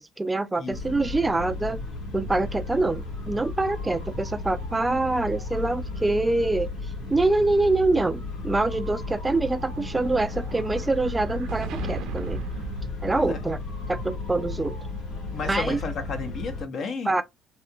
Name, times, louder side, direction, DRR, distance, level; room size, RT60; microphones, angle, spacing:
voice 1, 0.0-1.8 2.1-6.7 7.1-12.4 13.0-13.6 13.9-14.8 15.5-15.8 17.1-17.2, right 2 dB, 15° right, 0.3 m, -25 dB
sound 1, 0.7-16.6, left 3 dB, 80° left, 1.2 m, -34 dB
Explosion, 9.0-13.7, right 3 dB, 70° right, 0.6 m, -37 dB
voice 2, 13.1-13.4 15.3-17.2, left 4 dB, 55° left, 0.8 m, -33 dB
3.0 x 2.8 x 2.3 m
hypercardioid pair, 65°, 0 cm